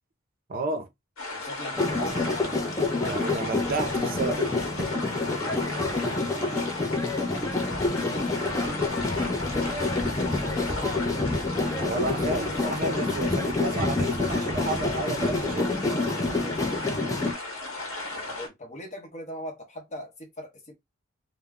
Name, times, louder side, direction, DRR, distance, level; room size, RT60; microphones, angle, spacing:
voice 1, 0.5-0.9 3.0-4.9 11.8-15.8, right 2 dB, 45° right, 0.5 m, -31 dB
sound 1, 1.2-18.5, left 2 dB, 85° left, 0.9 m, -35 dB
voice 2, 1.3-2.4 7.3-11.5 18.1-20.7, left 1 dB, 35° left, 0.8 m, -41 dB
sound 2, 1.8-17.3, left 2 dB, 15° left, 0.4 m, -28 dB
2.2 x 2.0 x 3.5 m
head